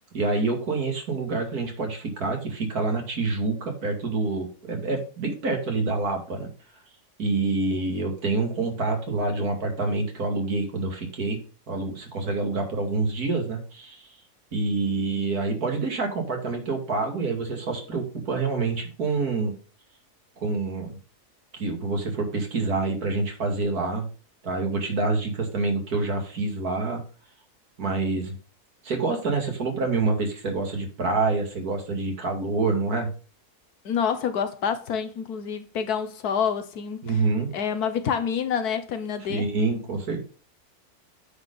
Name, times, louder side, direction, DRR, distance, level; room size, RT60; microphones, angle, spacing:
voice 1, 0.1-6.5 7.2-11.4 11.7-14.1 14.5-19.5 20.4-21.0 21.5-24.1 24.4-27.0 27.8-28.4 28.8-33.1 37.0-37.5 39.3-40.2, right 3 dB, 70° right, 2.6 m, -27 dB
voice 2, 33.8-37.2 37.5-39.5, left 7 dB, 75° left, 1.5 m, -27 dB
9.5 x 4.4 x 5.2 m
omnidirectional pair, 1.7 m